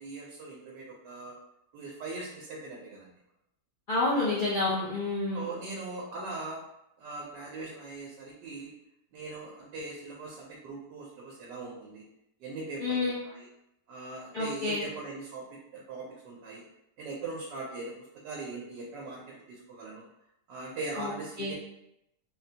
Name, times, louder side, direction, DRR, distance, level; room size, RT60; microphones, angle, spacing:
voice 1, 0.0-1.4 1.7-3.1 5.3-6.6 7.0-8.7 9.1-12.0 12.4-13.5 13.9-15.4 15.7-16.6 17.0-18.0 18.2-20.0 20.5-21.5, right 3 dB, 90° right, -3 dB, 1.3 m, -40 dB
voice 2, 3.9-5.4 12.8-13.2 14.3-14.8 21.0-21.1 21.4-21.5, left 2 dB, 75° left, -8 dB, 0.4 m, -29 dB
3.7 x 2.1 x 2.7 m, 0.84 s
omnidirectional pair, 1.8 m